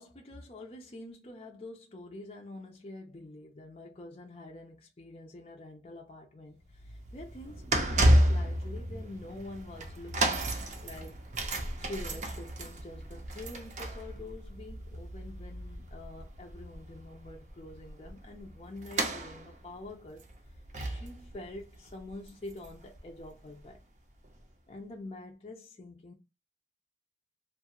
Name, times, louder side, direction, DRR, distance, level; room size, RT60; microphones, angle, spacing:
voice 1, 0.0-10.5 10.8-11.2 11.8-20.2 20.8-23.8 24.7-26.1, left 2 dB, 35° left, 0.5 m, -46 dB
sound 1, 6.6-23.0 23.2-23.5 24.3-24.4, right 1 dB, 40° right, 0.5 m, -32 dB
2.6 x 2.3 x 2.8 m
head